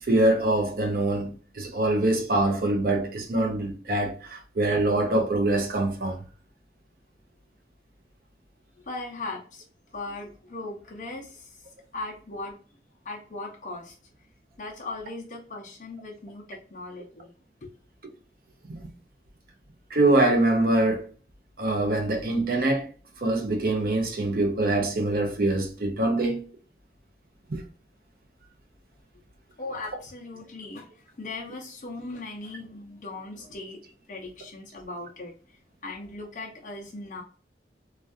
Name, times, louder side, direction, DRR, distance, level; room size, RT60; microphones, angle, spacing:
voice 1, 0.0-6.2 18.7-18.8 19.9-21.0 21.6-22.9 23.2-26.4 27.5-27.6, right 2 dB, 55° right, 0.5 m, -24 dB
voice 2, 8.9-9.6 9.9-12.5 13.0-14.0 14.6-17.3 17.6-17.7 29.6-33.8 34.1-37.2, left 2 dB, 45° left, 0.5 m, -38 dB
2.3 x 2.2 x 2.5 m
head